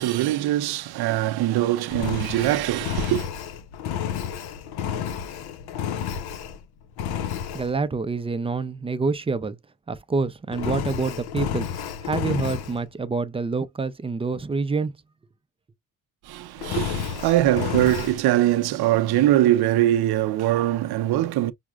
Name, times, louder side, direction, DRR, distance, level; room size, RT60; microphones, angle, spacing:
voice 1, 0.0-3.3 16.3-21.5, right 14 dB, 80° right, 0.6 m, -22 dB
Engine, 1.9-6.6 7.0-7.7 10.5-12.8 16.6-18.2, left 8 dB, 80° left, 0.6 m, -30 dB
voice 2, 7.5-9.6 9.9-11.7 12.0-15.0, right 4 dB, 15° right, 0.4 m, -27 dB
5.9 x 2.1 x 2.2 m
cardioid pair, 125°, 37 cm